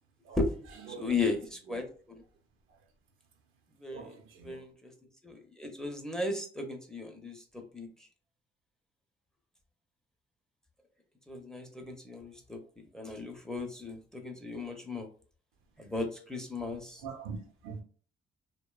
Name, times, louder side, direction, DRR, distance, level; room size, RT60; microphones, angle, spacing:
voice 1, 0.9-2.2 3.8-4.1 4.4-4.9 5.2-7.9 11.3-12.6 12.9-15.1 15.8-17.0, left 3 dB, 5° left, 0.5 m, -36 dB
voice 2, 3.9-4.6 17.0-17.4 17.6-17.8, right 5 dB, 90° right, 0.6 m, -42 dB
2.6 x 2.2 x 2.2 m
cardioid pair, 90°, 20 cm